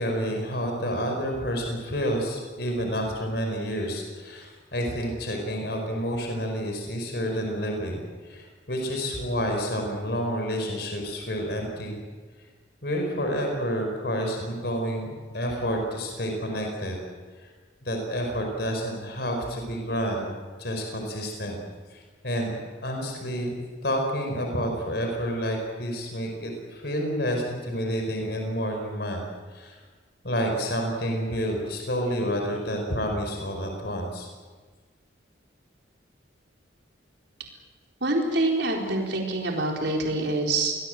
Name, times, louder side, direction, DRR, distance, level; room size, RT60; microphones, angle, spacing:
voice 1, 0.0-8.0 8.2-12.0 12.8-17.0 17.4-17.5 17.8-20.3 20.6-21.6 21.9-22.5 22.8-23.6 23.8-29.3 29.5-29.8 30.2-34.3, equal, 60° left, 2 dB, 5.1 m, -29 dB
voice 2, 38.0-40.8, right 2 dB, 65° right, 0 dB, 4.3 m, -25 dB
27.0 x 20.0 x 7.9 m, 1.5 s
head